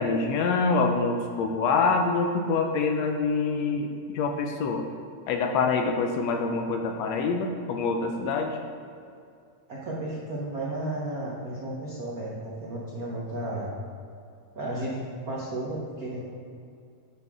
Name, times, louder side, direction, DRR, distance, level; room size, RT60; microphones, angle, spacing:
voice 1, 0.0-4.9 5.3-8.6, left 4 dB, 75° left, 3 dB, 1.7 m, -25 dB
voice 2, 9.7-13.7 14.5-16.2, right 1 dB, 75° right, -5 dB, 0.8 m, -33 dB
10.0 x 6.8 x 3.6 m, 2.4 s
omnidirectional pair, 3.3 m